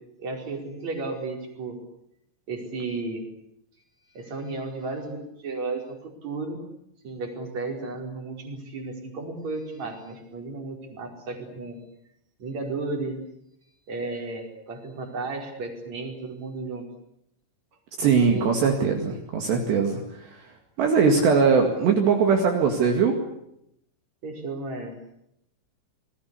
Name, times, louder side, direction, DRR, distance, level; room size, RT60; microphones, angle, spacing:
voice 1, 0.2-1.8 2.5-3.2 4.1-6.6 7.0-11.8 12.4-13.1 13.9-16.8 18.0-18.7 24.2-24.9, right 3 dB, 35° right, 3 dB, 5.5 m, -33 dB
voice 2, 18.0-20.4 20.8-23.1, right 5 dB, 60° right, 3 dB, 4.0 m, -21 dB
28.0 x 20.0 x 8.3 m, 0.78 s
omnidirectional pair, 6.0 m